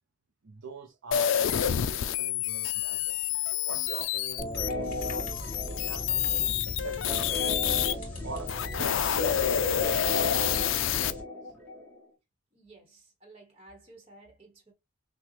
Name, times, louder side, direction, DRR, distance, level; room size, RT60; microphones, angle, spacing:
voice 1, 0.4-3.4 3.6-7.9 8.2-11.5, right 4 dB, 70° right, 0.7 m, -44 dB
sound 1, 1.1-7.9 8.4-11.1, left 10 dB, 70° left, 0.4 m, -28 dB
sound 2, 4.4-12.0, left 1 dB, 10° left, 2.1 m, -35 dB
sound 3, 4.5-9.6, left 3 dB, 40° left, 2.1 m, -47 dB
voice 2, 12.5-14.7, right 2 dB, 25° right, 1.2 m, -54 dB
6.1 x 2.4 x 3.1 m
head